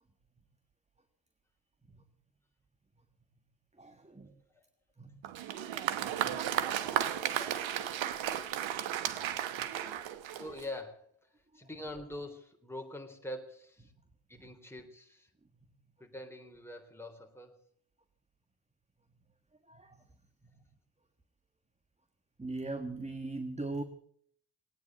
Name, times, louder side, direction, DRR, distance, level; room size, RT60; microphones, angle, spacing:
voice 1, 3.8-4.3 5.0-5.1 9.6-10.0 19.7-20.0 22.4-23.8, right 2 dB, 15° right, 9 dB, 1.5 m, -40 dB
Applause, 5.2-10.8, right 11 dB, 85° right, 1.2 m, -34 dB
voice 2, 10.3-11.1 11.5-13.9 14.3-15.3 16.0-17.6, left 1 dB, 5° left, 3 dB, 3.7 m, -44 dB
20.0 x 9.2 x 7.8 m, 0.63 s
supercardioid pair, 60°, 45 cm